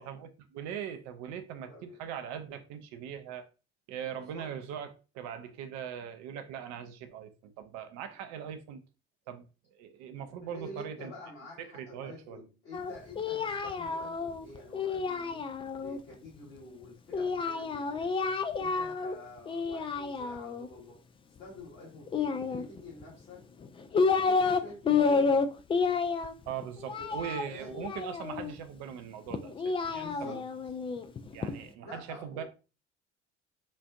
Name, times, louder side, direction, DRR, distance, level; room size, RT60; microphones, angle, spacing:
voice 1, 0.0-3.5 3.9-8.8 9.3-9.5 9.7-11.1 11.7-12.4 26.5-30.4 31.3-32.4, right 8 dB, 50° right, 0.6 m, -41 dB
voice 2, 1.7-2.0 4.0-4.5 10.4-15.4 15.8-18.2 18.6-21.0 21.4-23.4 23.9-25.5 27.0-28.0 29.9-30.4 31.8-32.4, left 1 dB, 60° left, 2.0 m, -48 dB
Singing, 12.7-16.0 17.1-19.2 19.5-20.7 22.1-23.0 23.6-24.6 24.9-28.5 29.3-31.5, left 4 dB, 15° left, 0.3 m, -30 dB
5.2 x 2.5 x 2.4 m
figure-of-eight pair, 55°, 35 cm